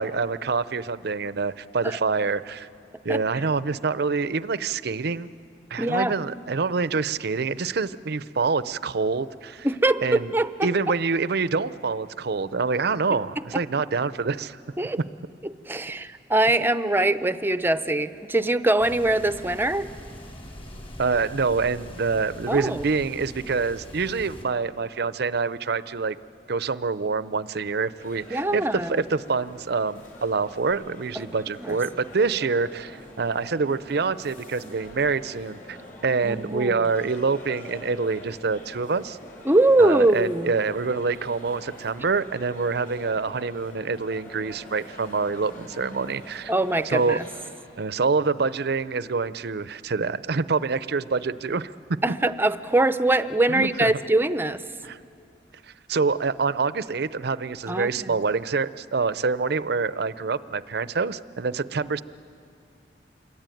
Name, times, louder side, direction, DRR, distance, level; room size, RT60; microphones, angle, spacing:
voice 1, 0.0-2.7 3.0-5.3 5.7-9.7 10.0-10.3 10.6-14.6 21.0-26.2 26.5-35.8 36.0-39.2 39.8-46.5 46.9-47.2 47.8-51.7 53.5-53.9 54.8-55.0 55.9-62.0, right 4 dB, 60° right, 16 dB, 0.6 m, -26 dB
voice 2, 3.1-3.4 5.8-6.1 9.6-10.7 14.8-15.0 15.7-19.9 22.5-22.8 28.3-29.0 31.2-31.3 31.6-31.8 36.2-36.8 39.5-40.5 46.5-47.2 52.0-54.6 57.7-58.1, right 2 dB, 10° right, 12 dB, 0.6 m, -23 dB
sound 1, 18.8-24.4, equal, 35° left, 3.3 m, -42 dB
sound 2, 28.0-47.5, equal, 50° left, 5.6 m, -45 dB
27.0 x 23.0 x 9.2 m, 2.6 s
head